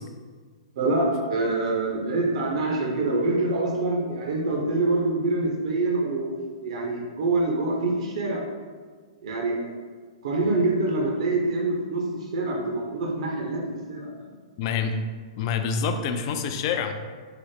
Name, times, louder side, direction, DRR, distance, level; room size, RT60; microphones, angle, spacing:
voice 1, 0.8-6.3 6.6-8.4 9.2-9.7 10.2-12.0 12.3-13.6 13.9-14.3, right 2 dB, 65° right, -1 dB, 0.7 m, -25 dB
voice 2, 14.6-14.9 15.4-16.9, left 6 dB, 45° left, 7 dB, 0.3 m, -26 dB
4.8 x 2.0 x 3.2 m, 1.5 s
hypercardioid pair, 130°, 4 cm